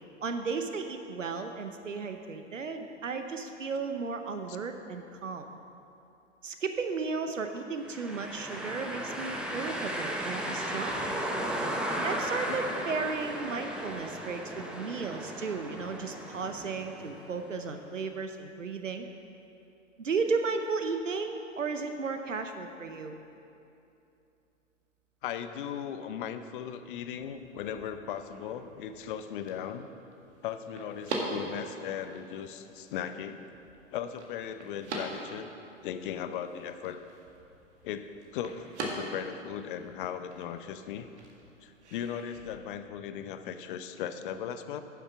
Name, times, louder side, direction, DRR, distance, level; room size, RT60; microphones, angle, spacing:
voice 1, 0.2-5.5 6.4-11.3 12.0-19.1 20.0-23.2, right 4 dB, 85° right, 7 dB, 0.8 m, -34 dB
sound 1, 7.8-17.6, right 1 dB, ahead, 0.7 m, -35 dB
voice 2, 25.2-29.9 30.4-33.5 33.9-35.5 35.8-37.0 37.8-41.1 41.6-44.8, left 9 dB, 45° left, 10 dB, 0.7 m, -37 dB
sound 2, 27.1-42.6, right 2 dB, 65° right, 1.8 m, -43 dB
9.9 x 7.2 x 5.9 m, 2.8 s
figure-of-eight pair, 110°, 37 cm